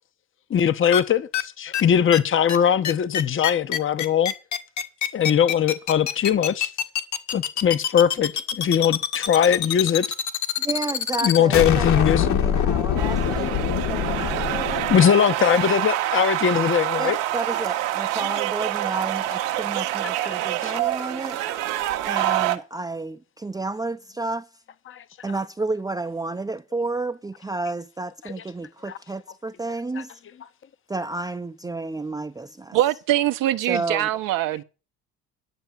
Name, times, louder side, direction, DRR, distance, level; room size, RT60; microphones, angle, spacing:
voice 1, 0.5-4.3 5.1-6.7 7.3-10.0 11.2-12.3 14.0-14.2 14.9-17.2 20.6-20.8 24.9-25.0 28.2-28.3 30.0-30.1, left 8 dB, 35° left, 1.1 m, -20 dB
sound 1, 0.9-1.0 1.3-1.4 1.7-1.8 2.1-2.2 2.5-2.6 2.8-15.0, left 9 dB, 55° left, 1.9 m, -24 dB
voice 2, 10.6-13.6 13.9-14.8 17.0-21.4 22.0-24.5 25.2-30.2 30.9-32.8 33.7-34.1, right 3 dB, 10° right, 0.7 m, -31 dB
sound 2, 13.0-22.6, right 14 dB, 90° right, 1.7 m, -26 dB
voice 3, 32.7-34.6, right 14 dB, 70° right, 1.1 m, -23 dB
11.5 x 6.7 x 7.4 m
supercardioid pair, 85°, 35 cm